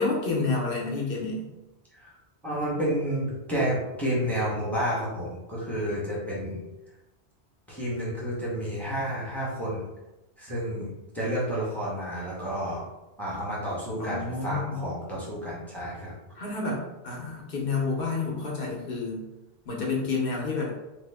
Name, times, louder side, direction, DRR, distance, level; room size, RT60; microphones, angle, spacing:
voice 1, 0.0-1.5 14.0-14.8 16.4-19.2 19.7-20.7, left 3 dB, 60° left, -2 dB, 1.0 m, -29 dB
voice 2, 2.4-6.6 7.7-9.8 10.4-10.9 11.1-12.8 13.2-16.1, equal, ahead, -7 dB, 0.9 m, -30 dB
3.0 x 2.1 x 3.4 m, 0.99 s
omnidirectional pair, 1.1 m